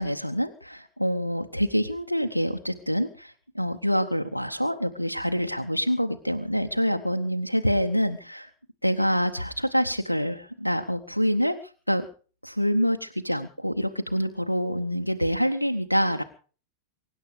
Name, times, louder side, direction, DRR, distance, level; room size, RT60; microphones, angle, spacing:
voice 1, 0.0-8.5 8.8-12.1 12.4-16.2, equal, 90° left, 7 dB, 0.9 m, -26 dB
24.0 x 10.0 x 5.0 m, 0.39 s
figure-of-eight pair, 90°, 0 cm